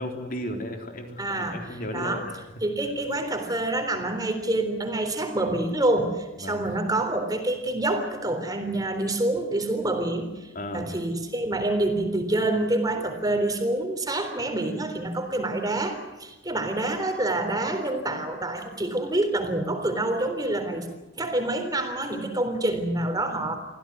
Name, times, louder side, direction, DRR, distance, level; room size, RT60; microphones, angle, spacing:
voice 1, 0.0-2.4 6.4-6.6 10.5-10.9, equal, 50° left, 4 dB, 3.8 m, -34 dB
voice 2, 1.2-1.6 1.9-2.2 2.6-10.3 10.7-20.9 21.2-23.6, right 2 dB, 20° right, 6 dB, 3.7 m, -27 dB
24.5 x 16.0 x 9.5 m, 1.0 s
head